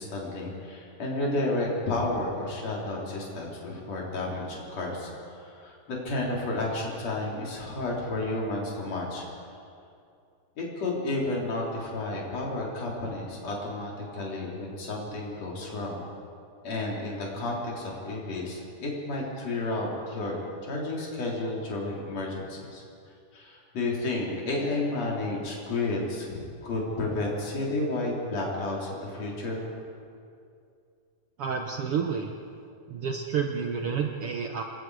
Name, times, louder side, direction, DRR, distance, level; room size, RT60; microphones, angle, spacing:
voice 1, 0.0-9.3 10.6-16.1 16.6-22.8 23.3-29.7, left 2 dB, 60° left, -3 dB, 4.6 m, -31 dB
voice 2, 31.4-32.3 32.9-34.6, right 6 dB, 65° right, 3 dB, 1.6 m, -29 dB
27.5 x 21.0 x 4.9 m, 2.5 s
omnidirectional pair, 3.4 m